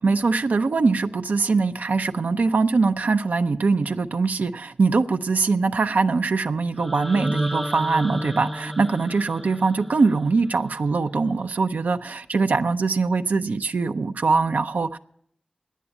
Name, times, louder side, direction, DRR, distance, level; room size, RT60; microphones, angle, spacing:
voice 1, 0.0-15.0, right 4 dB, 90° right, 0.5 m, -22 dB
sound 1, 6.8-10.8, equal, 5° left, 0.6 m, -32 dB
10.0 x 8.3 x 9.7 m
wide cardioid pair, 45°, 3 cm